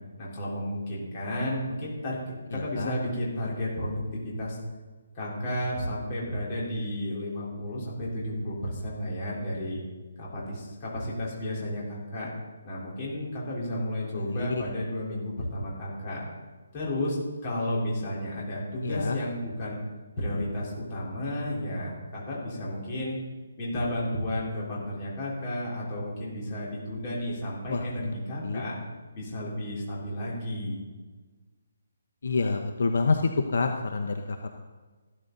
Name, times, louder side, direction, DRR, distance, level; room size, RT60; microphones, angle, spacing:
voice 1, 0.2-4.6 5.1-9.8 10.2-12.3 12.6-16.2 16.7-19.8 20.2-23.2 23.6-28.8 29.1-30.8, left 1 dB, 20° left, -6 dB, 4.1 m, -32 dB
voice 2, 2.5-2.9 14.3-14.5 18.8-19.2 27.7-28.1 28.4-28.6 32.2-33.2 33.5-34.5, left 4 dB, 60° left, 5 dB, 1.0 m, -28 dB
15.0 x 12.5 x 4.0 m, 1.3 s
hypercardioid pair, 175°, 0 cm